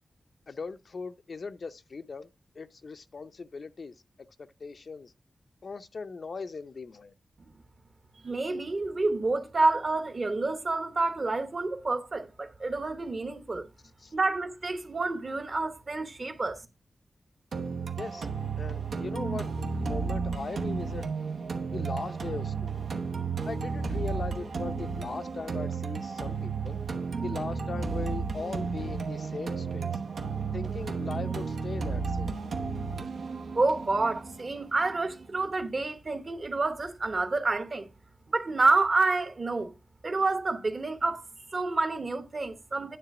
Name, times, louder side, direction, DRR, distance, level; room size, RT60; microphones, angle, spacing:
voice 1, 0.5-2.3 2.5-3.9 4.4-5.1 5.6-7.1 14.0-14.1 18.0-18.3 18.6-21.0 21.7-22.9 23.4-26.8 27.2-29.9 30.5-32.4, left 4 dB, 55° left, 0.5 m, -39 dB
voice 2, 8.2-13.7 14.1-16.6 33.5-37.9 38.3-39.7 40.0-41.2 41.5-43.0, right 3 dB, 40° right, 1.0 m, -28 dB
sound 1, 17.5-35.5, right 5 dB, 85° right, 1.0 m, -33 dB
9.8 x 3.4 x 5.9 m
wide cardioid pair, 130°, 0 cm